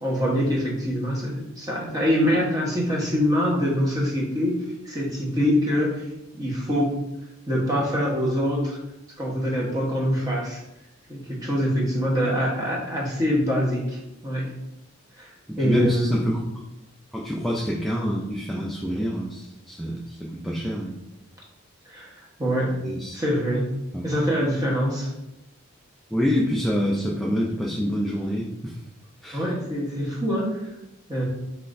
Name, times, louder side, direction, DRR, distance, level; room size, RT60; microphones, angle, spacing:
voice 1, 0.0-4.6 4.8-6.1 6.3-7.0 7.5-8.8 9.2-10.6 11.1-14.5 15.2-15.3 15.6-16.3 21.9-22.8 23.1-23.7 24.0-25.1 29.3-30.7 31.1-31.2, equal, 15° right, -4 dB, 1.1 m, -24 dB
voice 2, 15.5-16.4 17.1-21.0 22.8-23.2 23.9-24.0 26.1-28.8 29.2-29.4, equal, ahead, -3 dB, 0.3 m, -27 dB
5.7 x 3.3 x 2.6 m, 0.93 s
head